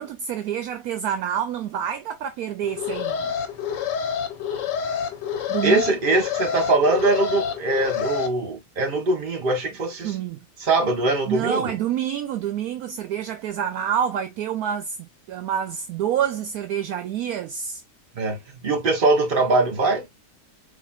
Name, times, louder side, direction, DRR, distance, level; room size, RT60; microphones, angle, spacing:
voice 1, 0.0-3.3 5.5-5.8 10.0-10.5 11.3-17.8, right 9 dB, 70° right, 1.0 m, -27 dB
Alarm, 2.6-8.3, left 7 dB, 90° left, 1.5 m, -28 dB
voice 2, 5.6-10.2 10.6-11.7 18.1-20.1, right 2 dB, 35° right, 1.3 m, -22 dB
4.2 x 3.1 x 2.3 m
omnidirectional pair, 1.8 m